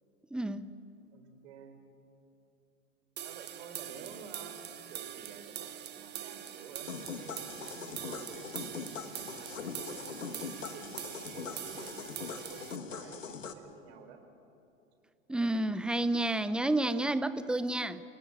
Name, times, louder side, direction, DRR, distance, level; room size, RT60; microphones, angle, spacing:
voice 1, 0.3-0.7 15.3-18.0, right 2 dB, ahead, 14 dB, 0.7 m, -30 dB
voice 2, 1.1-1.8 3.2-4.6 4.9-9.6 9.8-14.2, right 5 dB, 55° right, 6 dB, 4.1 m, -51 dB
sound 1, 3.2-12.8, right 10 dB, 25° right, 1.5 m, -43 dB
sound 2, 6.9-13.5, left 5 dB, 80° left, 1.7 m, -42 dB
28.5 x 18.0 x 8.8 m, 2.7 s
figure-of-eight pair, 90°, 38 cm